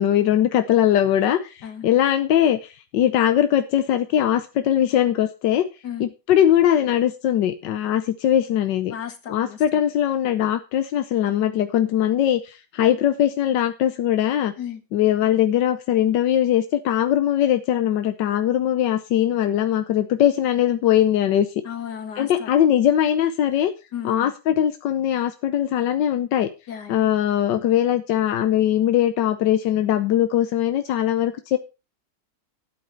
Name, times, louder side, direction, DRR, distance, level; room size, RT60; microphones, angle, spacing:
voice 1, 0.0-5.6 6.0-8.9 9.3-14.5 14.9-21.5 22.2-23.7 24.0-26.5 26.9-31.6, left 11 dB, 90° left, 1.5 m, -21 dB
voice 2, 8.9-9.6 14.6-14.8 21.7-22.5 23.9-24.3 26.7-27.0, left 9 dB, 70° left, 2.4 m, -34 dB
12.5 x 9.2 x 4.4 m
omnidirectional pair, 1.9 m